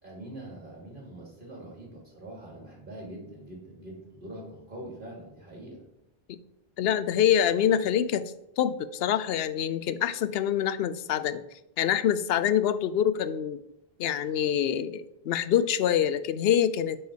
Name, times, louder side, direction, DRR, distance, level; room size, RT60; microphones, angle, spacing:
voice 1, 0.0-5.8, right 1 dB, 55° right, -1 dB, 2.9 m, -43 dB
voice 2, 6.8-11.4 11.8-13.6 14.0-17.0, left 9 dB, 75° left, 14 dB, 0.8 m, -25 dB
8.3 x 4.5 x 6.3 m, 0.83 s
omnidirectional pair, 1.1 m